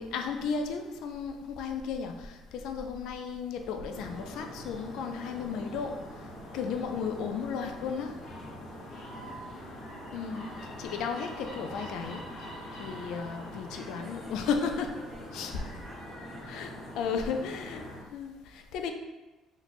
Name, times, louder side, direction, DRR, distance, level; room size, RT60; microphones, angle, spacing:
voice 1, 0.0-6.0 6.5-8.1 10.1-10.5 10.8-12.2 12.8-15.0 15.3-15.5 16.5-16.7 17.0-17.8 18.1-18.9, left 6 dB, 70° left, 5 dB, 0.3 m, -34 dB
sound 1, 3.9-18.0, left 1 dB, 50° left, 0.9 m, -43 dB
voice 2, 9.5-10.0 13.7-14.5 14.9-17.0, right 1 dB, 15° right, -3 dB, 0.5 m, -51 dB
3.0 x 2.1 x 4.0 m, 1.2 s
cardioid pair, 165°, 0 cm